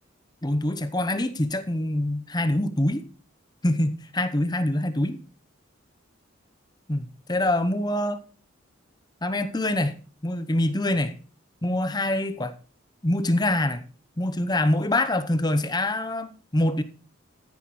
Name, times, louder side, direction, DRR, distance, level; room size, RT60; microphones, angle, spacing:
voice 1, 0.4-3.0 3.6-5.2 6.9-8.2 9.2-10.0 10.2-11.1 11.6-12.5 13.0-13.8 14.2-16.8, left 1 dB, 20° left, 0.8 m, -25 dB
13.0 x 10.5 x 3.1 m
head